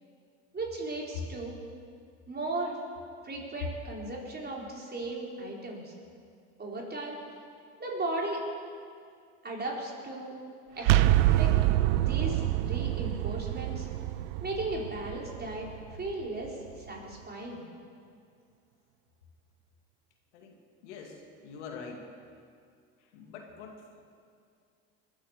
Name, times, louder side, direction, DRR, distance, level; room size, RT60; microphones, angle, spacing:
voice 1, 0.5-1.6 2.3-2.8 3.2-5.9 6.6-7.2 7.8-8.4 9.4-10.3 10.8-11.0 11.4-11.5 12.0-13.9 14.4-15.7 16.0-17.6, right 2 dB, 30° right, -2 dB, 4.4 m, -36 dB
sound 1, 10.8-16.5, right 14 dB, 85° right, 0.6 m, -26 dB
voice 2, 20.8-22.1 23.0-24.0, left 5 dB, 85° left, 2 dB, 2.4 m, -45 dB
21.5 x 8.7 x 7.3 m, 2.3 s
hypercardioid pair, 75°, 34 cm